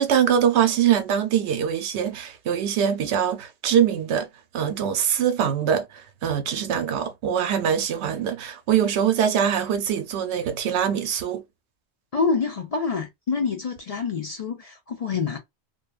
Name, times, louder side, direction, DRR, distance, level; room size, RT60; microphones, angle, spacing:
voice 1, 0.0-4.3 4.5-11.4, right 8 dB, 90° right, 0.9 m, -23 dB
voice 2, 12.1-15.4, left 5 dB, 50° left, 0.5 m, -26 dB
2.6 x 2.2 x 2.3 m
omnidirectional pair, 1.1 m